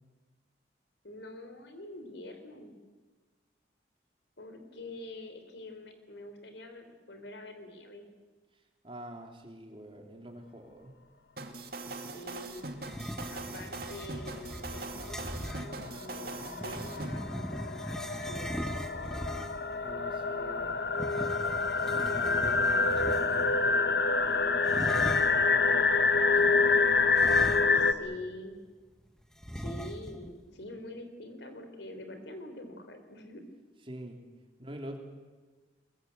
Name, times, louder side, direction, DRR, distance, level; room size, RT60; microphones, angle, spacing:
voice 1, 1.0-2.8 4.4-8.1 11.8-12.7 13.3-19.4 27.7-28.6 29.5-33.4, left 1 dB, 75° left, 7 dB, 3.5 m, -46 dB
voice 2, 8.8-10.9 19.8-20.8 21.7-28.1 33.9-34.2 34.6-35.0, equal, 30° right, 3 dB, 3.2 m, -45 dB
sound 1, 11.4-17.1, right 3 dB, 55° right, 2.2 m, -41 dB
sound 2, 12.8-15.7 16.6-19.7 20.9-23.6 24.6-25.5 27.1-28.0 28.3-28.4 29.4-30.3, equal, 5° left, 1.0 m, -39 dB
sound 3, 15.1-15.2 15.5-27.9, left 4 dB, 60° left, 0.9 m, -27 dB
23.0 x 22.0 x 8.1 m, 1.3 s
head